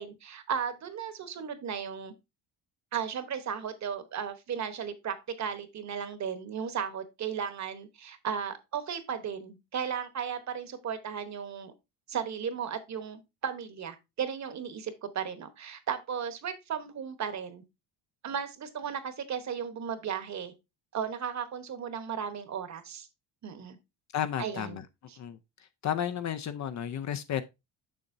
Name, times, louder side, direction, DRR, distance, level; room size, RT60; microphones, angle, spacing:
voice 1, 0.0-2.1 2.9-11.7 12.1-17.6 18.2-20.5 20.9-23.1 23.4-23.8 24.4-24.8 25.1-25.2, right 7 dB, 40° right, 1.1 m, -35 dB
voice 2, 24.1-24.8 25.2-25.4 25.8-27.4, left 9 dB, 40° left, 0.5 m, -32 dB
7.0 x 6.5 x 2.6 m
cardioid pair, 145°, 43 cm